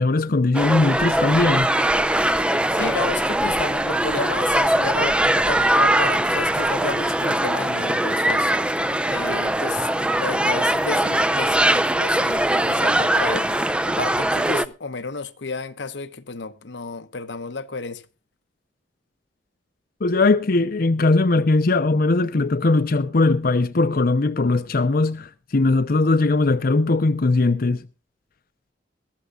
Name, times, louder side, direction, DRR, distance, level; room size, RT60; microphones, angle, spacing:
voice 1, 0.0-1.7 20.0-27.8, left 3 dB, 55° left, 0.7 m, -19 dB
sound 1, 0.5-14.7, right 1 dB, 5° right, 0.6 m, -21 dB
voice 2, 2.7-8.5 9.1-9.9 10.1-13.5 13.9-18.0, left 4 dB, 80° left, 1.0 m, -32 dB
22.0 x 14.0 x 2.4 m
head